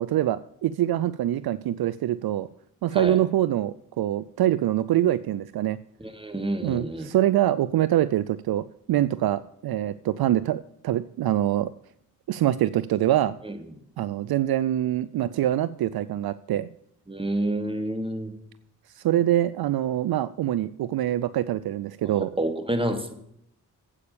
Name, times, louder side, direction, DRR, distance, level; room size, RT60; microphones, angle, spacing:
voice 1, 0.0-2.5 2.8-5.8 6.6-11.7 12.3-13.4 14.0-16.7 19.0-22.3, right 12 dB, 65° right, 17 dB, 0.6 m, -24 dB
voice 2, 6.0-7.1 13.4-13.5 17.1-18.3 22.0-23.1, right 1 dB, 15° right, 6 dB, 2.7 m, -29 dB
9.8 x 8.5 x 7.0 m, 0.71 s
supercardioid pair, 40°, 40 cm